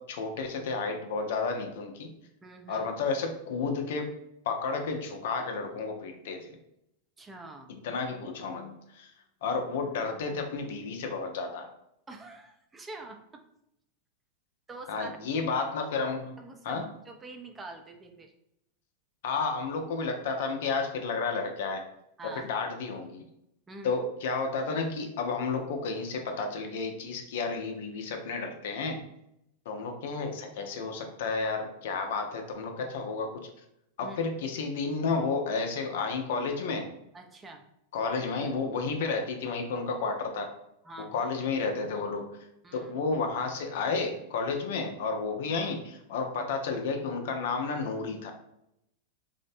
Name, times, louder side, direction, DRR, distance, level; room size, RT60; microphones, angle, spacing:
voice 1, 0.0-2.1 2.7-4.1 4.5-6.5 7.8-9.1 9.4-11.7 14.9-16.3 16.6-16.8 19.2-21.8 22.4-23.2 23.8-29.0 29.7-33.4 34.0-36.9 37.9-40.5 41.1-42.3 42.7-48.3, left 4 dB, 70° left, 4 dB, 0.4 m, -31 dB
voice 2, 2.4-2.9 7.2-7.7 12.1-13.4 14.7-15.4 16.4-18.3 22.2-22.5 23.7-24.0 34.0-34.2 37.1-37.7 40.8-41.3 42.6-42.9, right 2 dB, 20° right, 4 dB, 0.4 m, -45 dB
2.5 x 2.0 x 2.6 m, 0.81 s
hypercardioid pair, 110°, 0 cm